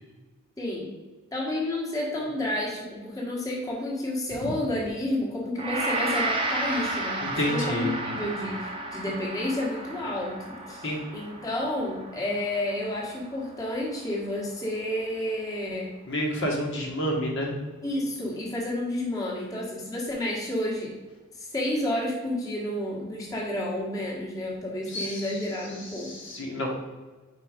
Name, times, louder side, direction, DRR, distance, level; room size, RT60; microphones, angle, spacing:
voice 1, 0.6-0.9 1.3-15.9 17.8-20.9 21.3-26.1, left 1 dB, 15° left, -4 dB, 1.3 m, -30 dB
Gong, 5.6-14.8, right 2 dB, 25° right, 0.8 m, -33 dB
voice 2, 7.2-7.9 10.8-11.0 16.1-17.5 24.9-25.3 25.8-26.7, equal, 55° left, -2 dB, 1.2 m, -29 dB
4.7 x 4.6 x 5.0 m, 1.3 s
head